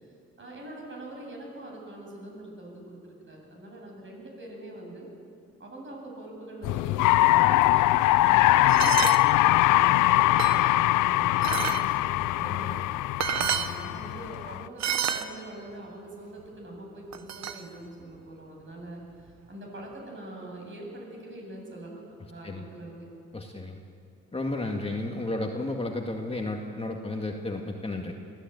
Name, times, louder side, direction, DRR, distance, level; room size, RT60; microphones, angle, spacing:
voice 1, 0.4-3.0 3.3-5.1 5.6-7.9 8.2-12.8 13.3-22.0 22.3-23.1, right 1 dB, 40° right, 0 dB, 8.0 m, -43 dB
sound 1, 6.6-14.6, left 17 dB, 90° left, 0.5 m, -22 dB
sound 2, 8.7-9.2 9.9-10.8 11.4-11.8 12.9-13.0 13.2-13.7 14.8-15.3 17.1-17.6, right 8 dB, 60° right, 1.3 m, -29 dB
voice 2, 23.3-23.8 24.3-28.1, left 2 dB, 20° left, 2 dB, 2.0 m, -32 dB
22.0 x 15.5 x 9.3 m, 2.4 s
cardioid pair, 90°, 30 cm